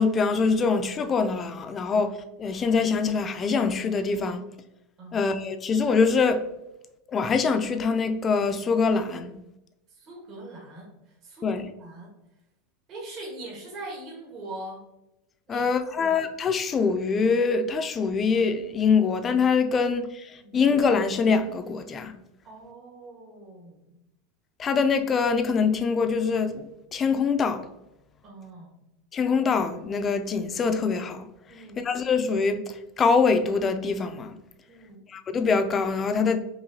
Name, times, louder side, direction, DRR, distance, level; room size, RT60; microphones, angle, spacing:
voice 1, 0.0-4.4 5.1-6.4 7.1-9.3 11.4-11.7 15.5-22.1 24.6-27.7 29.1-31.3 31.8-34.4 35.1-36.4, left 5 dB, 30° left, 0.4 m, -24 dB
voice 2, 9.9-11.5 11.8-12.1 12.9-14.8 15.5-16.2 20.4-20.6 22.4-24.0 28.2-28.8 31.5-31.8 34.7-35.0, right 2 dB, 45° right, 1.4 m, -42 dB
4.8 x 2.7 x 2.7 m
hypercardioid pair, 110°, 0 cm